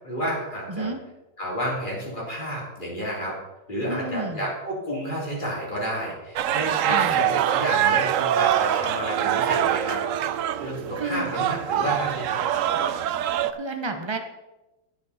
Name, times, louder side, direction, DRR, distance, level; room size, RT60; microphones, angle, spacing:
voice 1, 0.0-0.9 1.4-3.4 3.7-10.0 10.6-13.0, equal, 25° left, -5 dB, 3.7 m, -31 dB
voice 2, 0.7-1.0 3.9-4.5 6.8-7.2 11.0-11.3 13.5-14.2, right 3 dB, 20° right, 6 dB, 0.8 m, -30 dB
sound 1, 6.4-13.5, right 10 dB, 85° right, 0.7 m, -24 dB
17.0 x 6.3 x 4.3 m, 1.0 s
omnidirectional pair, 2.0 m